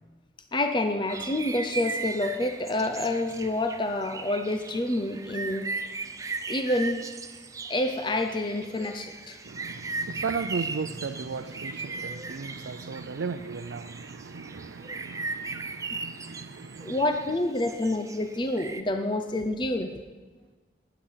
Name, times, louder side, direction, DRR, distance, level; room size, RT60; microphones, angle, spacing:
voice 1, 0.5-5.7 6.5-7.1 7.7-9.4 16.8-19.9, left 1 dB, 25° left, 6 dB, 0.6 m, -28 dB
sound 1, 1.1-18.8, right 3 dB, 20° right, 0.5 m, -38 dB
voice 2, 9.4-17.0, right 5 dB, 90° right, 7 dB, 0.5 m, -36 dB
13.0 x 10.5 x 5.7 m, 1.3 s
head